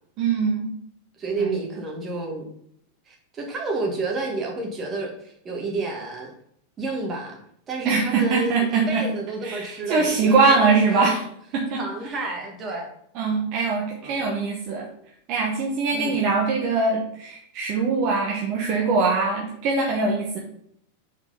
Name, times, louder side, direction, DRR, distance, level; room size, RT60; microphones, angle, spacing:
voice 1, 0.2-0.7 1.4-1.6 7.8-9.0 9.4-11.2 11.5-11.8 13.1-14.8 15.3-20.4, right 4 dB, 40° right, -2 dB, 1.2 m, -22 dB
voice 2, 1.2-2.5 3.1-6.3 6.8-7.4 7.7-11.1 11.8-12.9 14.0-14.2 15.9-16.2, right 3 dB, 25° right, 0 dB, 1.9 m, -30 dB
5.0 x 4.6 x 5.4 m, 0.69 s
figure-of-eight pair, 90°, 0 cm